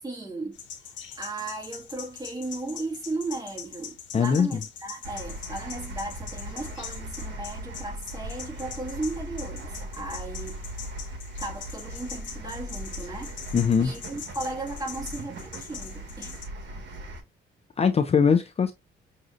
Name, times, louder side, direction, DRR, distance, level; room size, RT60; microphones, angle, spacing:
voice 1, 0.0-0.6 1.2-10.6 11.4-13.4 13.8-16.3, right 2 dB, 20° right, 2.0 m, -36 dB
sound 1, 0.5-16.4, left 7 dB, 70° left, 1.3 m, -43 dB
voice 2, 4.1-4.6 13.5-13.9 17.8-18.7, left 6 dB, 30° left, 0.5 m, -21 dB
sound 2, 5.0-17.2, right 1 dB, 60° right, 1.3 m, -39 dB
6.1 x 2.7 x 2.5 m
cardioid pair, 90°, 20 cm